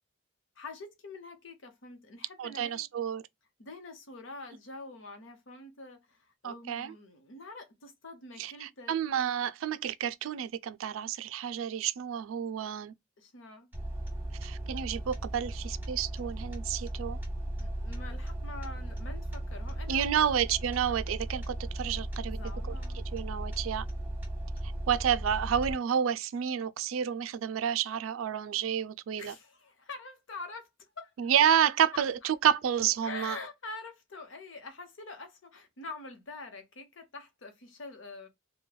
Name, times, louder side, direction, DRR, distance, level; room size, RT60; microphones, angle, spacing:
voice 1, 0.6-2.9 3.6-8.9 13.2-13.7 17.6-20.2 22.3-23.0 29.2-30.7 31.0-31.3 31.9-32.3 33.0-38.3, left 3 dB, 70° left, 0.9 m, -45 dB
voice 2, 2.4-3.2 6.4-6.9 8.4-12.9 14.4-17.2 19.9-22.4 23.1-23.8 24.9-29.3 31.2-33.4, right 8 dB, 90° right, 0.4 m, -30 dB
sound 1, 13.7-25.7, right 1 dB, 10° right, 1.1 m, -36 dB
3.1 x 2.2 x 2.2 m
head